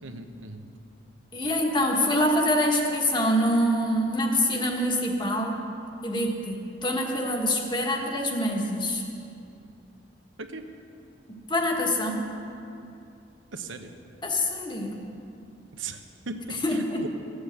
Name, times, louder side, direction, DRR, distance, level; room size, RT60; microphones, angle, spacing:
voice 1, 0.0-0.7 10.4-10.7 13.5-13.9 15.8-16.0 16.3-17.1, right 3 dB, 90° right, 6 dB, 1.0 m, -37 dB
voice 2, 1.3-5.6 6.0-9.0 11.3-12.3 14.2-15.0 16.6-17.1, equal, 25° left, 1 dB, 1.4 m, -25 dB
15.0 x 8.0 x 8.0 m, 2.6 s
head